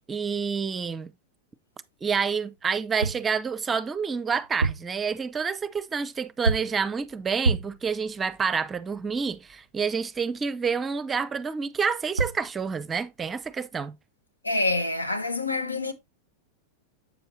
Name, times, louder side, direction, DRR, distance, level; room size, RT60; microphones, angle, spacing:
voice 1, 0.1-1.1 2.0-13.9, right 5 dB, 20° right, 0.6 m, -28 dB
sound 1, 2.8-3.3 4.4-5.0 6.4-6.8 7.4-7.9 11.9-12.0 12.2-12.5, right 3 dB, 75° right, 0.4 m, -27 dB
voice 2, 14.4-15.9, left 2 dB, 80° left, 1.2 m, -26 dB
7.9 x 6.7 x 2.8 m
figure-of-eight pair, 90°, 0 cm